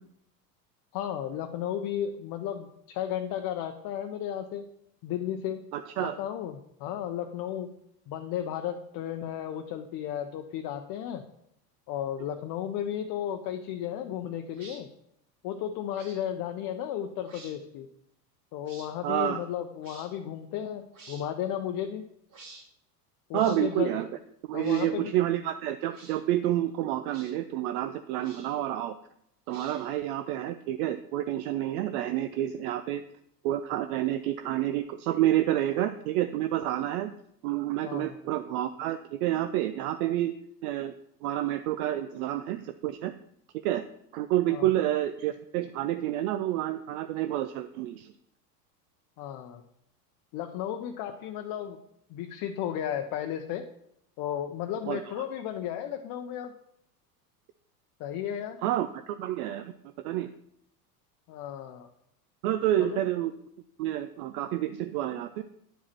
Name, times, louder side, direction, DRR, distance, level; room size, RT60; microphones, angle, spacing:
voice 1, 0.9-4.6 5.0-5.6 6.0-7.7 8.1-11.2 11.9-14.9 15.4-17.9 18.5-22.0 23.3-24.0 24.5-25.1 37.8-38.2 44.5-44.7 49.2-49.6 50.3-51.8 52.1-53.6 54.2-56.5 58.0-58.6 61.3-61.9 62.8-63.1, left 10 dB, 45° left, 5 dB, 0.7 m, -34 dB
voice 2, 5.7-6.2 19.0-19.4 23.3-24.1 24.5-29.0 29.5-33.0 33.4-37.1 37.4-40.4 40.6-40.9 41.2-43.1 43.6-43.8 44.1-48.1 54.9-55.0 58.6-59.7 60.0-60.3 62.4-63.3 63.8-65.4, right 13 dB, 65° right, 10 dB, 0.6 m, -29 dB
sound 1, 14.5-14.8 15.9-16.2 17.2-17.5 18.6-18.9 19.8-20.1 20.9-21.3 22.3-22.6 23.3-23.6 24.5-24.9 25.9-26.2 27.1-27.3 28.2-28.6 29.5-30.0, right 3 dB, 45° right, 2.3 m, -50 dB
10.0 x 4.7 x 4.4 m, 0.75 s
hypercardioid pair, 85°, 48 cm